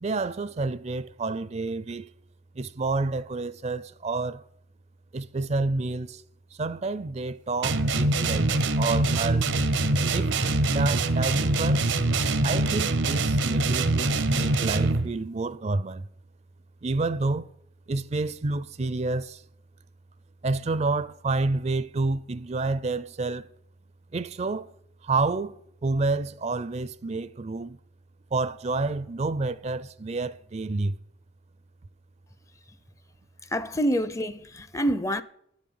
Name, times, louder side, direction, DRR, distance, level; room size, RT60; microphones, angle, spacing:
voice 1, 0.0-2.1 2.5-4.4 5.1-6.2 6.5-9.5 10.1-11.9 12.4-16.1 16.8-17.5 17.9-19.4 20.4-23.5 24.1-24.7 25.0-27.8 28.3-31.0, right 3 dB, 35° right, 0.4 m, -29 dB
sound 1, 7.6-15.1, right 2 dB, 90° right, 1.0 m, -24 dB
voice 2, 33.5-35.2, equal, 15° left, 0.5 m, -27 dB
10.5 x 7.2 x 9.4 m
head